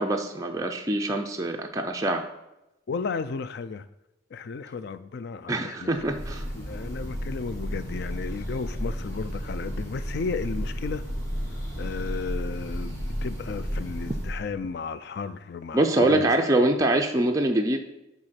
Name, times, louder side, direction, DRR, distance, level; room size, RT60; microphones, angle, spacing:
voice 1, 0.0-2.2 5.5-6.4 15.7-17.8, right 1 dB, 15° right, 2 dB, 0.4 m, -24 dB
voice 2, 2.9-3.8 4.3-5.9 6.6-11.0 11.7-16.3, left 5 dB, 50° left, 13 dB, 0.4 m, -34 dB
Breathing / Bird, 5.9-14.5, equal, 15° left, 1.5 m, -33 dB
7.9 x 3.7 x 5.7 m, 0.93 s
head